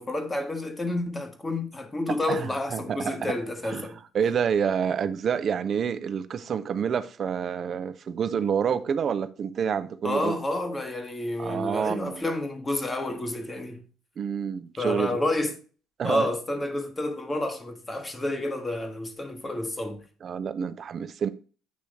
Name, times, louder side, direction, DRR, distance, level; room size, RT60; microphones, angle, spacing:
voice 1, 0.0-4.0 10.0-13.8 14.8-15.5 16.0-20.0, left 1 dB, 20° left, 1.3 m, -30 dB
voice 2, 2.3-3.3 3.6-3.9 4.1-10.4 11.4-12.2 14.2-15.2 16.0-16.3 20.2-21.3, right 7 dB, 45° right, 0.6 m, -28 dB
8.3 x 3.1 x 4.9 m
cardioid pair, 95°, 0 cm